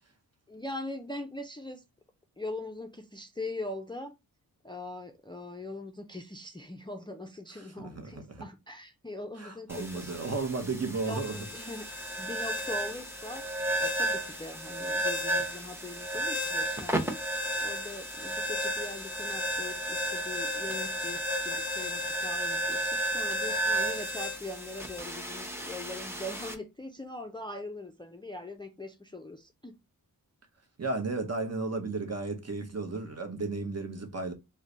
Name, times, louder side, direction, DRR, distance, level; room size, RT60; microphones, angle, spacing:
voice 1, 0.5-1.8 2.4-4.1 4.6-10.4 11.0-13.5 13.8-17.2 17.6-29.8, left 2 dB, 15° left, 0.4 m, -41 dB
voice 2, 7.5-8.4 9.4-11.4 30.8-34.3, right 3 dB, 45° right, 0.9 m, -34 dB
sound 1, 9.7-26.5, right 1 dB, 5° right, 0.7 m, -33 dB
3.1 x 2.2 x 3.7 m
wide cardioid pair, 95°, 37 cm